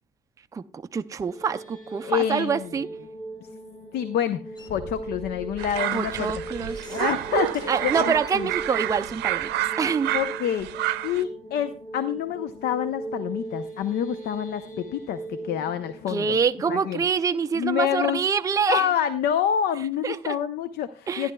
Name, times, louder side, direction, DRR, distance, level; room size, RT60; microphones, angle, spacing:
voice 1, 0.5-2.9 5.9-6.8 7.7-10.1 16.1-18.9 20.0-20.4 21.1-21.3, right 6 dB, 20° right, 0.4 m, -26 dB
sound 1, 1.2-18.2, right 2 dB, 55° left, 4.3 m, -39 dB
voice 2, 2.0-2.7 3.9-4.4 4.7-6.3 6.9-8.5 10.1-16.4 16.7-17.0 17.5-18.2 18.7-21.3, left 9 dB, 70° left, 0.7 m, -27 dB
sound 2, 4.6-9.6, left 1 dB, 25° left, 1.3 m, -45 dB
sound 3, 5.6-11.2, right 15 dB, 80° right, 0.6 m, -29 dB
15.0 x 10.5 x 2.3 m
cardioid pair, 110°, 17 cm